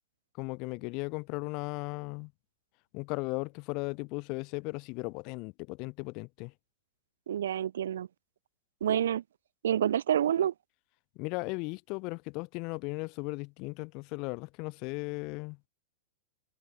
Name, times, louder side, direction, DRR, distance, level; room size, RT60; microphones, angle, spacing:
voice 1, 0.4-2.3 2.9-6.5 11.2-15.6, left 29 dB, 50° left, 0.9 m, -36 dB
voice 2, 7.3-8.1 8.8-9.2 9.6-10.5, right 10 dB, 75° right, 0.4 m, -28 dB
hypercardioid pair, 110°, 0 cm